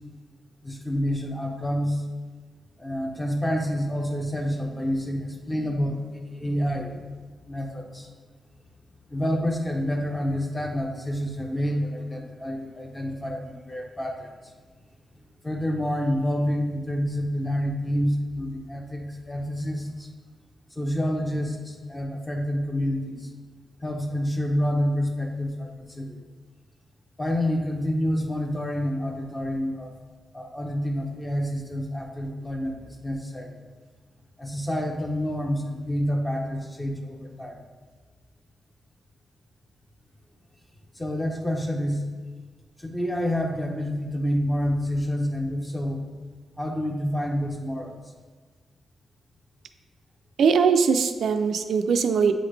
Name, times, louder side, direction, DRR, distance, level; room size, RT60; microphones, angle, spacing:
voice 1, 0.6-2.0 2.8-7.0 7.5-8.1 9.1-14.5 15.4-20.1 20.7-23.3 23.8-26.2 27.2-29.9 30.3-33.5 34.4-37.6 40.9-42.0 42.8-46.0 46.6-48.0, equal, 10° left, 3 dB, 0.6 m, -28 dB
voice 2, 50.4-52.3, right 6 dB, 70° right, 7 dB, 0.3 m, -21 dB
7.6 x 3.8 x 3.2 m, 1.4 s
wide cardioid pair, 140°, 0 cm